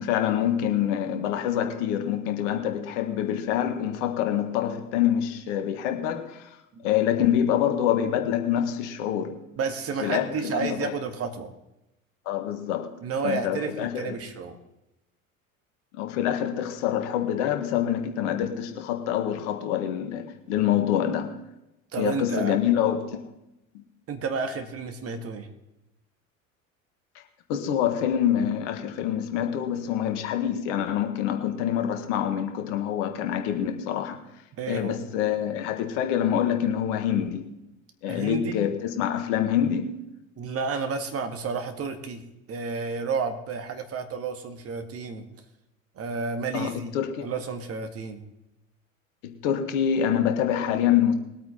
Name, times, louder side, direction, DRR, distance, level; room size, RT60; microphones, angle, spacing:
voice 1, 0.0-6.5 6.8-9.4 10.0-10.9 12.2-14.1 16.0-21.4 22.0-23.2 23.7-23.8 27.5-34.2 34.7-37.5 38.0-40.0 46.5-47.3 49.2-51.1, left 10 dB, 55° left, 1.6 m, -26 dB
voice 2, 9.6-11.5 13.0-14.6 21.9-22.6 24.1-25.5 34.6-35.0 38.1-38.6 40.4-45.3 46.0-46.9 47.2-48.2, right 5 dB, 35° right, 1.9 m, -31 dB
21.0 x 8.7 x 3.9 m
figure-of-eight pair, 70°, 41 cm